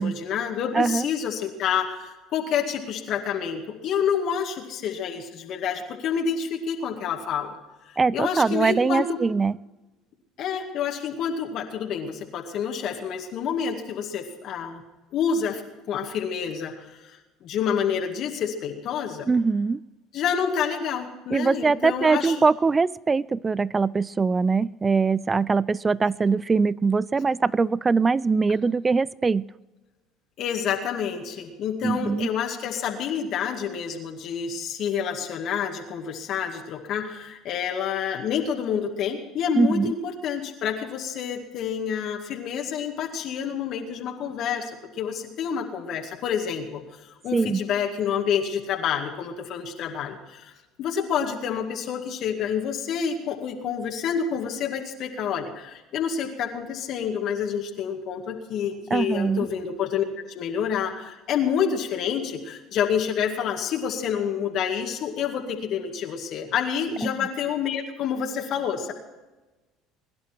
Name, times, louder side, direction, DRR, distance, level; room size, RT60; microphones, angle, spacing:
voice 1, 0.0-7.5 7.9-9.2 10.4-14.8 15.1-15.6 15.9-19.3 20.1-22.4 30.4-50.5 50.8-68.9, left 7 dB, 60° left, 2 dB, 2.1 m, -28 dB
voice 2, 8.0-9.6 19.3-19.8 21.3-29.5 31.8-32.3 39.6-39.9 47.3-47.6 58.9-59.5 67.0-67.1, right 4 dB, 25° right, 23 dB, 0.5 m, -22 dB
22.0 x 11.0 x 4.6 m, 1.1 s
hypercardioid pair, 75°, 0 cm